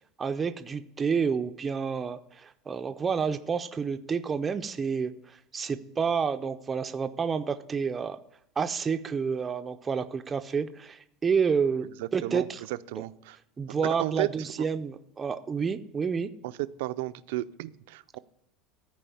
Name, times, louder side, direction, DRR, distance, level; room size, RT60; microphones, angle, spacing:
voice 1, 0.2-8.2 8.6-12.6 13.0-13.1 13.6-16.3, right 6 dB, 15° right, 8 dB, 0.4 m, -29 dB
voice 2, 12.0-13.4 13.8-14.3 16.4-16.5 16.8-18.2, right 17 dB, 80° right, 14 dB, 0.5 m, -33 dB
13.5 x 4.8 x 7.0 m, 0.75 s
cardioid pair, 165°, 0 cm